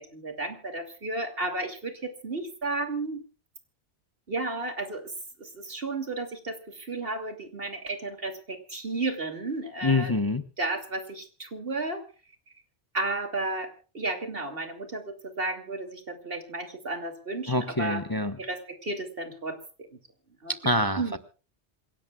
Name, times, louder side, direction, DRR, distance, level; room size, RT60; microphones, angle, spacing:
voice 1, 0.0-3.2 4.3-5.0 5.4-10.1 10.6-12.0 12.9-18.0 18.4-19.6 20.4-21.2, right 2 dB, 60° right, 6 dB, 3.0 m, -33 dB
voice 2, 9.8-10.4 17.5-18.4 20.5-21.0, left 2 dB, 20° left, 8 dB, 1.0 m, -26 dB
27.0 x 17.5 x 2.4 m, 0.36 s
omnidirectional pair, 1.1 m